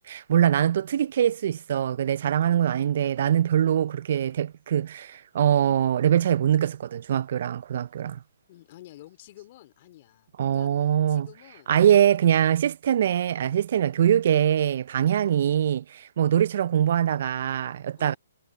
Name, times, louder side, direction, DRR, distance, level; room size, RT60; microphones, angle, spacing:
voice 1, 0.1-8.2 10.4-11.3 11.7-18.1, right 10 dB, 55° right, 0.5 m, -23 dB
voice 2, 8.5-11.7 15.2-15.4 17.9-18.2, left 16 dB, 40° left, 3.2 m, -50 dB
hypercardioid pair, 140°, 0 cm